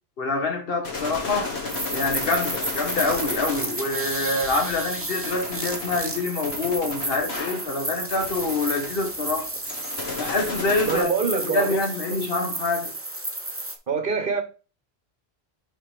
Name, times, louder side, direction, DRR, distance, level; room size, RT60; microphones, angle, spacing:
voice 1, 0.2-1.5 1.9-9.5 10.2-11.1 11.4-12.9, left 3 dB, 65° left, 1.5 m, -26 dB
sound 1, 0.8-11.0, left 3 dB, 85° left, 2.0 m, -34 dB
sound 2, 1.7-13.7, right 2 dB, 15° right, 0.9 m, -32 dB
voice 2, 10.8-11.8 13.9-14.4, right 5 dB, 55° right, 1.5 m, -25 dB
5.7 x 4.8 x 5.0 m
omnidirectional pair, 1.0 m